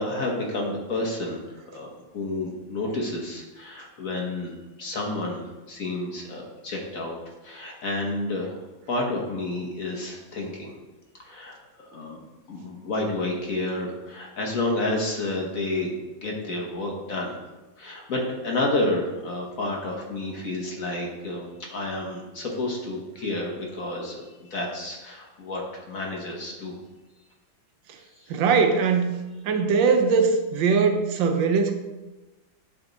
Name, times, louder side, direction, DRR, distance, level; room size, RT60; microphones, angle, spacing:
voice 1, 0.0-1.4 1.7-8.6 8.9-10.7 11.2-11.5 11.9-12.2 12.5-15.9 16.2-17.3 17.8-26.7 28.2-28.4, left 2 dB, 50° left, -1 dB, 1.3 m, -30 dB
voice 2, 28.3-29.1 29.4-31.7, right 5 dB, 75° right, 6 dB, 1.3 m, -21 dB
10.0 x 3.5 x 3.9 m, 1.1 s
omnidirectional pair, 2.1 m